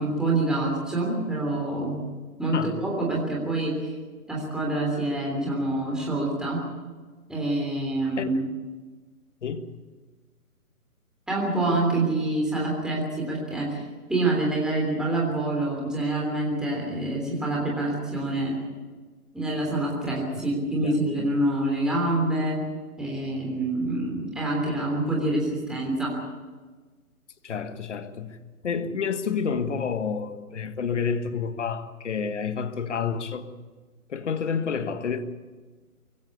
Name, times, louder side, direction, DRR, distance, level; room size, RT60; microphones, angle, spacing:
voice 1, 0.0-2.0 2.4-3.8 4.3-6.6 7.3-8.5 11.3-13.8 14.1-18.5 19.3-22.6 23.0-26.1, right 2 dB, ahead, -3 dB, 3.3 m, -26 dB
voice 2, 20.8-21.3 27.4-28.4 28.6-33.5 34.1-35.2, left 6 dB, 50° left, 10 dB, 1.7 m, -29 dB
24.0 x 16.0 x 8.5 m, 1.4 s
hypercardioid pair, 155°, 45 cm